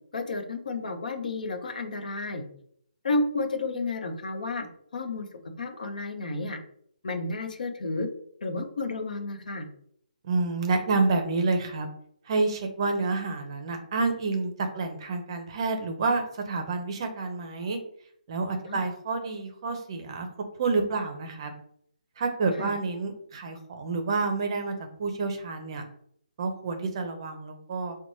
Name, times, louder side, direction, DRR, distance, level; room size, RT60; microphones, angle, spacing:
voice 1, 0.1-2.5 3.0-6.6 7.0-8.1 8.4-9.7 18.6-18.9 22.6-22.7, left 3 dB, 65° left, 6 dB, 0.8 m, -31 dB
voice 2, 10.2-11.9 12.3-17.8 18.3-20.3 20.6-21.5 22.2-25.8 26.4-28.0, right 3 dB, 35° right, 5 dB, 0.6 m, -29 dB
4.0 x 2.2 x 3.1 m, 0.65 s
hypercardioid pair, 160°, 5 cm